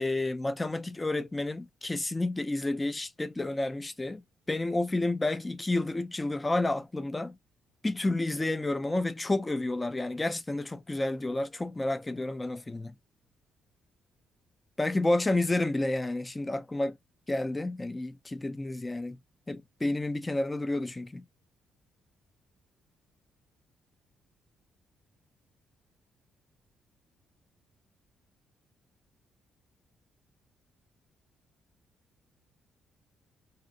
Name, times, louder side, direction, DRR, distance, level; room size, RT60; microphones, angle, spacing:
voice 1, 0.0-7.4 7.8-12.9 14.8-17.0 17.3-19.2 19.5-21.3, left 2 dB, 20° left, 0.4 m, -30 dB
2.5 x 2.1 x 2.6 m
cardioid pair, 90°, 0 cm